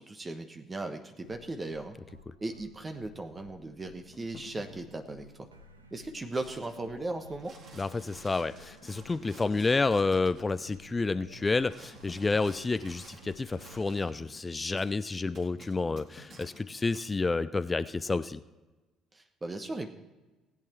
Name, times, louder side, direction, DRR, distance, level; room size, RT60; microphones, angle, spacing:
voice 1, 0.0-2.0 2.4-5.5 5.9-7.6 19.1-19.9, right 2 dB, 25° right, 6 dB, 1.1 m, -37 dB
sound 1, 1.2-14.0, right 1 dB, 85° right, 0.7 m, -55 dB
sound 2, 3.3-7.3 7.8-7.9 8.4-16.8, left 4 dB, 45° left, 1.5 m, -55 dB
sound 3, 6.3-6.8 7.2-10.5 11.4-14.2 14.8-14.9 15.3-16.6 16.9-17.1, right 3 dB, 45° right, 2.2 m, -55 dB
voice 2, 7.8-18.4, left 3 dB, 25° left, 14 dB, 0.4 m, -30 dB
19.0 x 8.7 x 4.5 m, 1.2 s
figure-of-eight pair, 50°, 0 cm